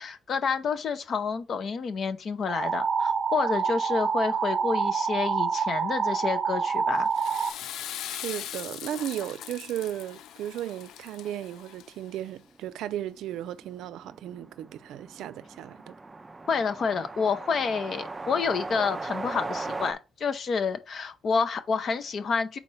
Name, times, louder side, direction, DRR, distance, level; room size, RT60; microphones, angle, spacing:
voice 1, 0.0-7.1 16.5-22.6, left 5 dB, 45° left, 0.8 m, -29 dB
sound 1, 2.5-7.5, right 6 dB, 35° right, 0.8 m, -27 dB
Water / Toilet flush, 6.9-12.2, left 10 dB, 80° left, 0.4 m, -40 dB
voice 2, 8.1-16.0, right 12 dB, 85° right, 0.4 m, -35 dB
sound 2, 12.4-12.5 12.7-12.8 13.1-19.9, right 3 dB, 15° right, 0.4 m, -38 dB
4.4 x 4.3 x 5.5 m
cardioid pair, 150°, 0 cm